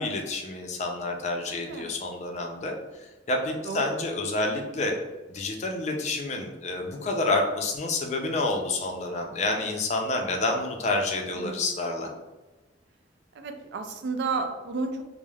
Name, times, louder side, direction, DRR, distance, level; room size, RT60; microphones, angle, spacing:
voice 1, 0.0-2.8 3.3-4.9 5.3-12.1, left 2 dB, 40° left, 2 dB, 0.4 m, -28 dB
voice 2, 1.5-2.0 3.6-3.8 11.4-11.8 13.3-15.0, right 4 dB, 70° right, 6 dB, 0.3 m, -32 dB
3.1 x 2.0 x 2.2 m, 1.1 s
head